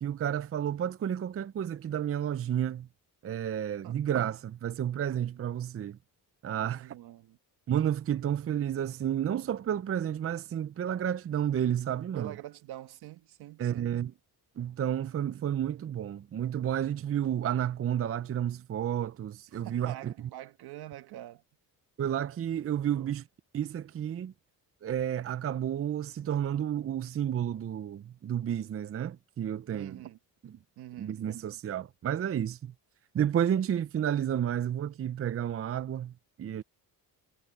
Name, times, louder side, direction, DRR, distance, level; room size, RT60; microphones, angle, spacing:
voice 1, 0.0-2.9 3.2-6.0 6.4-6.9 7.7-12.3 13.6-14.1 14.6-20.1 22.0-23.2 23.5-24.3 24.8-30.0 30.4-30.6 31.0-32.7 33.1-36.1 36.4-36.6, right 10 dB, 35° right, 0.6 m, -31 dB
voice 2, 6.6-7.4 12.1-13.9 19.6-21.4 22.9-23.1 29.7-30.2 30.8-31.2, right 14 dB, 80° right, 1.6 m, -45 dB
cardioid pair, 100°, 38 cm